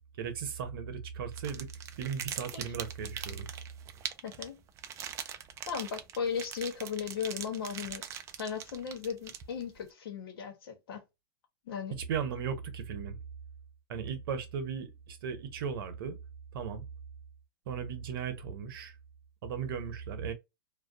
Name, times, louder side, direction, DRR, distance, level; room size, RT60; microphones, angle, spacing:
voice 1, 0.2-1.7 2.0-3.5 12.1-13.2 13.9-16.2 16.5-16.8 17.7-18.9 19.4-20.3, right 7 dB, 65° right, 0.7 m, -36 dB
sound 1, 1.3-9.8, right 9 dB, 25° right, 0.3 m, -42 dB
voice 2, 4.2-4.6 5.7-8.0 8.4-11.0 11.6-12.0, left 7 dB, 70° left, 1.0 m, -36 dB
2.5 x 2.3 x 2.3 m
hypercardioid pair, 135°, 13 cm